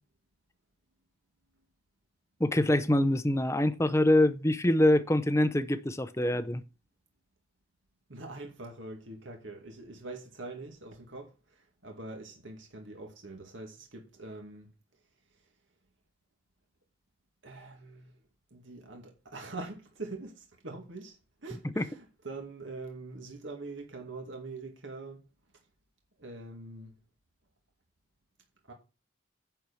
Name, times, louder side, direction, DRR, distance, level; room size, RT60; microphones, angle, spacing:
voice 1, 2.4-6.6 21.8-21.9, left 1 dB, 15° left, 0.6 m, -25 dB
voice 2, 8.1-14.7 15.3-15.5 17.4-18.1 18.5-25.2 26.2-27.0 28.7-28.8, right 2 dB, 70° right, 2.2 m, -44 dB
10.5 x 4.6 x 7.0 m
head